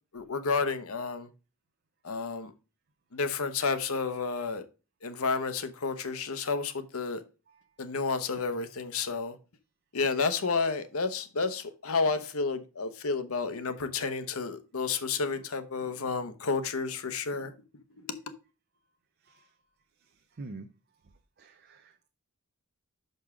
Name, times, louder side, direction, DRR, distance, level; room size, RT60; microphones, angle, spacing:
voice 1, 0.1-1.3 2.0-2.5 3.1-4.6 5.0-7.2 7.8-9.3 9.9-17.5, left 4 dB, 75° left, 0.9 m, -31 dB
voice 2, 20.4-20.7 21.4-22.1, right 3 dB, 45° right, 0.5 m, -45 dB
6.0 x 5.3 x 4.9 m
head